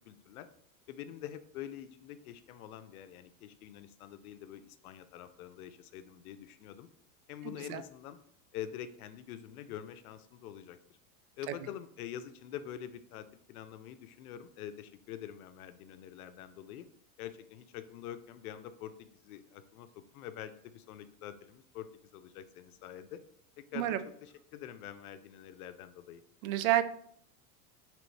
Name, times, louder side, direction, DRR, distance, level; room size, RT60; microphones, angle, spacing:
voice 1, 0.0-0.5 0.9-6.9 7.3-8.2 8.5-10.8 11.4-16.9 17.2-23.2 23.6-26.2, left 10 dB, 85° left, 11 dB, 0.5 m, -46 dB
voice 2, 26.4-26.8, right 14 dB, 75° right, 12 dB, 0.5 m, -28 dB
3.2 x 3.0 x 4.0 m, 0.66 s
supercardioid pair, 120°, 42 cm